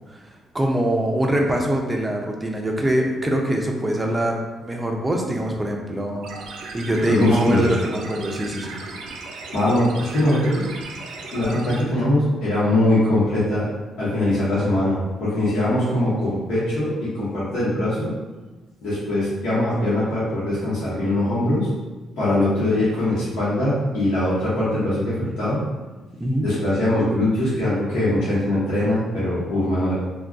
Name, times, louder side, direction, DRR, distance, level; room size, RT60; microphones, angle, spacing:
voice 1, 0.5-8.8 26.2-26.5, right 1 dB, 15° right, 0 dB, 0.5 m, -23 dB
sound 1, 6.2-11.8, right 3 dB, 85° right, 0.4 m, -36 dB
voice 2, 7.1-7.7 9.5-10.7 11.3-13.7 14.0-18.1 18.8-21.7 22.2-25.6 26.4-29.9, left 1 dB, 85° left, -11 dB, 1.0 m, -21 dB
2.4 x 2.3 x 3.5 m, 1.2 s
cardioid pair, 90°, 0 cm